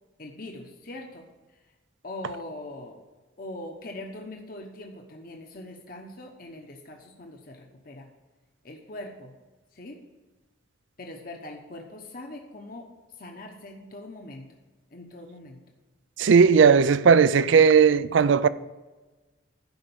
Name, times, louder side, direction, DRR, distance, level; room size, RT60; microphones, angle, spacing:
voice 1, 0.2-1.6 2.0-3.0 3.4-8.1 8.6-9.4 9.7-10.0 11.0-12.9 13.2-14.5 14.9-15.6, left 1 dB, 45° left, 0.9 m, -41 dB
voice 2, 16.2-18.5, right 6 dB, 75° right, 0.4 m, -17 dB
12.0 x 5.1 x 7.0 m
head